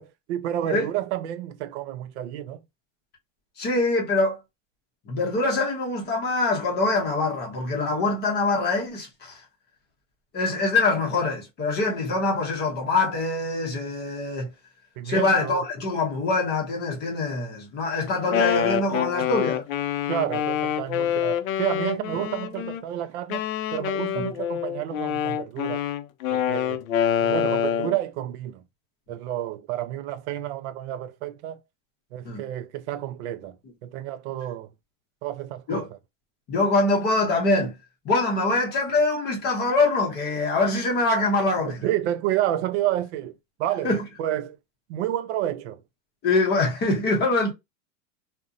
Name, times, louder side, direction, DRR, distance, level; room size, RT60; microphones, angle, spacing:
voice 1, 0.0-2.6 10.5-10.6 15.0-15.7 20.1-25.8 26.3-26.8 27.2-28.6 29.1-31.6 32.1-33.6 33.8-34.7 35.2-35.9 41.6-43.3 43.6-43.9 44.2-44.6 44.9-45.8, right 12 dB, 60° right, 0.5 m, -30 dB
voice 2, 3.6-4.4 5.1-9.4 10.3-14.5 15.0-19.6 24.2-24.3 32.3-32.4 35.7-35.9 36.5-37.7 38.0-41.9 43.8-44.0 46.2-47.5, left 3 dB, 25° left, 0.6 m, -24 dB
Wind instrument woodwind instrument, 18.1-22.8 23.3-28.0, left 9 dB, 80° left, 0.5 m, -26 dB
2.5 x 2.1 x 2.4 m
supercardioid pair, 140°, 41 cm